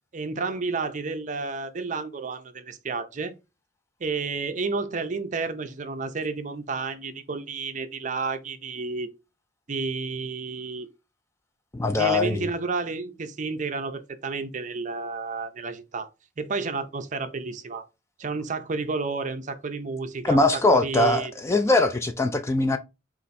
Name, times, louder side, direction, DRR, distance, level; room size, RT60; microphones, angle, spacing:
voice 1, 0.1-3.3 4.0-9.1 9.7-10.9 11.9-16.1 16.4-17.9 18.2-21.3, right 4 dB, 40° right, 0.5 m, -31 dB
voice 2, 11.7-12.5 20.2-22.8, left 2 dB, 15° left, 0.3 m, -22 dB
4.3 x 2.5 x 4.0 m
head